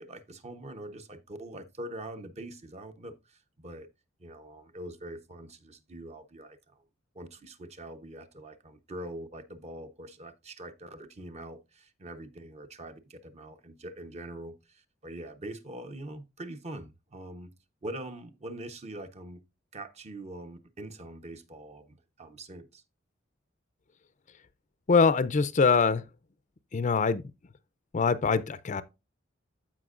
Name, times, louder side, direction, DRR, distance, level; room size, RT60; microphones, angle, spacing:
voice 1, 0.0-3.9 4.2-6.8 7.1-17.5 17.8-19.4 19.7-22.8, right 1 dB, 35° right, 0.9 m, -43 dB
voice 2, 24.9-26.0 26.7-27.2 27.9-28.8, left 5 dB, 40° left, 0.5 m, -23 dB
14.5 x 5.1 x 2.5 m
head